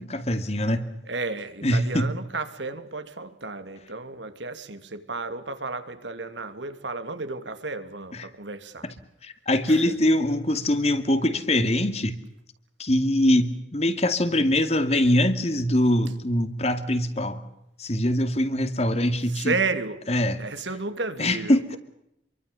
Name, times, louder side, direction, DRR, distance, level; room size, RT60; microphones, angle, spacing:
voice 1, 0.0-0.9 1.6-2.1 8.1-8.3 8.8-8.9 9.2-12.2 12.8-17.5 17.8-19.5 20.1-20.4 21.2-21.8, left 1 dB, 35° left, 2.3 m, -23 dB
voice 2, 1.1-8.9 9.7-10.0 19.3-20.1 20.4-21.8, right 3 dB, 85° right, 2.8 m, -32 dB
28.0 x 23.5 x 6.9 m
head